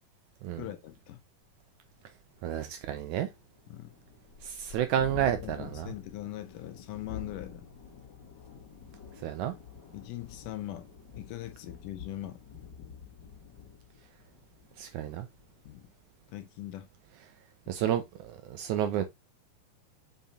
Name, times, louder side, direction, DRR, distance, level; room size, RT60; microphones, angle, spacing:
voice 1, 0.5-1.2 3.7-3.9 5.4-7.7 9.9-12.4 15.7-15.9 16.3-16.9 17.7-17.8, left 14 dB, 75° left, 2.1 m, -41 dB
Thunderstorm, 1.5-1.6 2.0-2.1 2.4-16.0, left 6 dB, 35° left, 2.1 m, -48 dB
voice 2, 2.4-3.3 4.4-5.9 9.2-9.5 14.8-15.3 17.7-19.0, right 10 dB, 80° right, 1.7 m, -30 dB
7.3 x 5.4 x 2.7 m
omnidirectional pair, 4.1 m